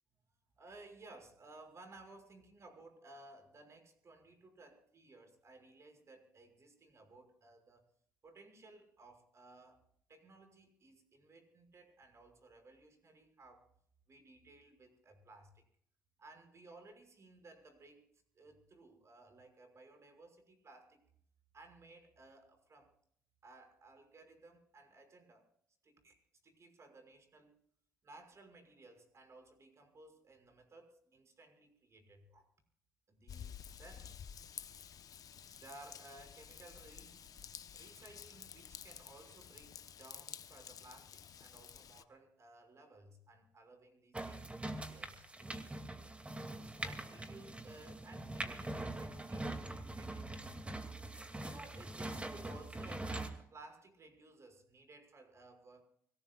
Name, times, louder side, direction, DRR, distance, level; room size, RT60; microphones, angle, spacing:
voice 1, 0.6-7.8 8.2-9.8 10.1-13.7 14.1-15.6 16.2-18.1 18.3-21.0 21.5-22.9 23.4-25.5 25.8-26.2 26.4-27.6 28.0-32.5 33.1-34.2 35.5-37.2 37.7-46.1 46.6-50.5 51.4-55.8, right 2 dB, 45° right, 5 dB, 6.0 m, -58 dB
Raindrop / Vehicle horn car horn honking / Trickle dribble, 33.3-42.0, left 8 dB, 60° left, 1.0 m, -51 dB
sound 1, 44.1-53.3, right 2 dB, 20° right, 2.4 m, -43 dB
25.0 x 18.0 x 2.4 m, 0.65 s
cardioid pair, 80°, 7 cm